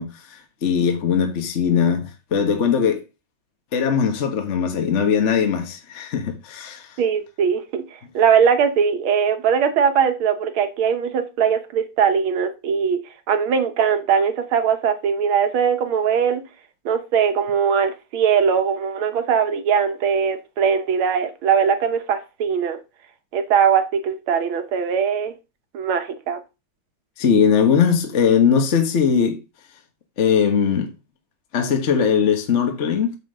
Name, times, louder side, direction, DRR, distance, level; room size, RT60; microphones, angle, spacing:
voice 1, 0.0-3.0 3.7-6.9 27.2-29.4 30.2-30.9 31.5-33.2, left 7 dB, 40° left, 1.2 m, -20 dB
voice 2, 7.0-7.8 8.1-13.0 13.3-16.4 16.9-22.8 23.3-25.3 25.7-26.4, right 7 dB, 75° right, 1.9 m, -20 dB
9.4 x 3.8 x 6.5 m
omnidirectional pair, 2.3 m